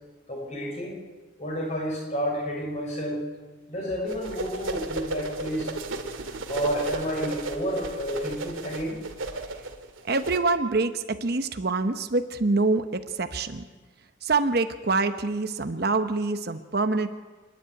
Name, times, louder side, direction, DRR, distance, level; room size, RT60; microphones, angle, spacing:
voice 1, 0.3-1.0 1.4-3.2 3.7-5.7 6.5-9.0, equal, 35° left, 0 dB, 5.9 m, -30 dB
sound 1, 4.1-10.4, right 2 dB, 85° right, 2.2 m, -34 dB
voice 2, 10.1-13.6 14.2-17.1, right 3 dB, 50° right, 9 dB, 0.9 m, -25 dB
26.0 x 11.0 x 9.6 m, 1.3 s
head